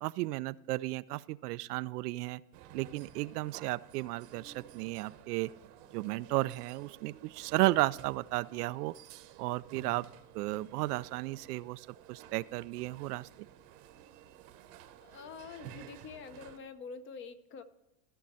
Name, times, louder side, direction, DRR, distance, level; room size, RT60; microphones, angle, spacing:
voice 1, 0.0-2.4 2.7-5.5 5.9-8.9 9.4-10.1 10.3-13.3, right 19 dB, 80° right, 17 dB, 0.5 m, -34 dB
sound 1, 2.5-16.6, right 10 dB, 50° right, 1.0 m, -53 dB
voice 2, 15.0-17.6, left 5 dB, 25° left, 12 dB, 0.6 m, -46 dB
15.0 x 6.3 x 4.2 m, 0.95 s
supercardioid pair, 140°, 47 cm